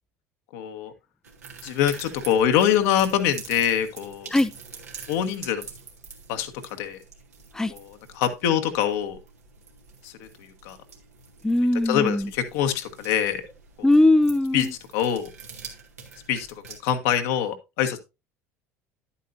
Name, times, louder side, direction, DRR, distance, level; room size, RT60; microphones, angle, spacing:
voice 1, 0.5-0.9 1.6-4.3 5.1-5.6 6.3-7.0 7.7-9.2 10.0-10.8 11.8-13.4 14.5-14.7 14.9-15.3 16.3-16.5 16.8-18.0, left 9 dB, 65° left, 1.2 m, -24 dB
sound 1, 1.2-16.8, right 5 dB, 85° right, 1.7 m, -45 dB
voice 2, 11.4-12.3 13.8-14.7, left 2 dB, 5° left, 0.5 m, -20 dB
10.5 x 8.4 x 2.6 m
hypercardioid pair, 70°, 8 cm